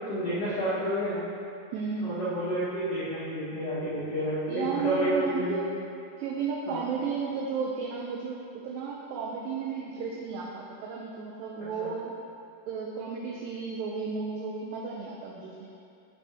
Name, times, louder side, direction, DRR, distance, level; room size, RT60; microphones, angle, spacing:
voice 1, 0.1-1.3 2.0-5.6 6.7-6.8 11.8-11.9, right 1 dB, 65° left, -11 dB, 1.6 m, -30 dB
voice 2, 1.7-2.2 4.5-5.7 6.2-12.3 12.7-15.8, right 5 dB, 85° right, -1 dB, 2.0 m, -33 dB
8.2 x 6.1 x 3.4 m, 2.6 s
omnidirectional pair, 4.7 m